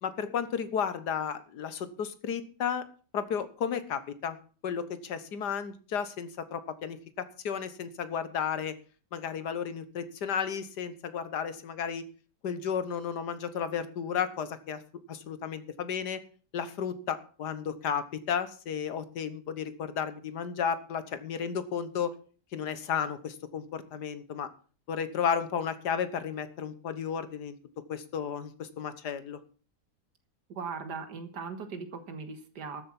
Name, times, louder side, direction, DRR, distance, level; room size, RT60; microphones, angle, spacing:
voice 1, 0.0-2.9 3.1-4.4 4.6-8.8 9.1-12.0 12.4-14.8 15.1-16.2 16.5-22.1 22.5-24.5 24.9-27.6 27.9-29.4, left 7 dB, 70° left, 13 dB, 1.8 m, -33 dB
voice 2, 30.5-32.8, right 5 dB, 75° right, 8 dB, 2.1 m, -39 dB
13.0 x 7.9 x 7.3 m, 0.39 s
omnidirectional pair, 1.8 m